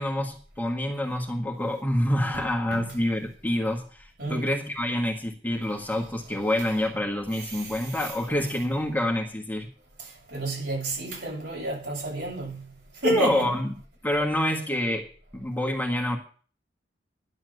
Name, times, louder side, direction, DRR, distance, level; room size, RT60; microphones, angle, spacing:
voice 1, 0.0-9.7 13.0-13.7 14.0-15.1 15.3-16.2, left 1 dB, 10° left, 1.7 m, -27 dB
voice 2, 7.3-8.1 8.4-8.5 10.0-13.5, right 2 dB, 70° right, 7.7 m, -32 dB
11.0 x 7.5 x 7.8 m
head